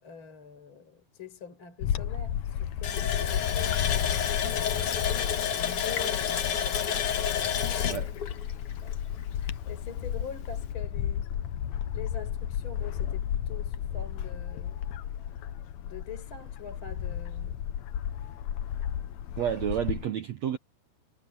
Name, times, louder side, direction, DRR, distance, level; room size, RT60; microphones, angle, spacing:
voice 1, 0.0-4.8 5.5-8.0 8.8-9.0 9.3-11.3 11.9-14.8 15.9-17.6 19.6-19.8, left 6 dB, 30° left, 5.3 m, -45 dB
Bird / Wind, 1.8-20.1, left 10 dB, 75° left, 1.7 m, -33 dB
Water tap faucet, 2.8-9.3 9.7-9.8 10.2-10.4, left 8 dB, 55° left, 1.8 m, -30 dB
voice 2, 19.4-20.6, right 10 dB, 70° right, 1.7 m, -30 dB
omnidirectional pair, 4.3 m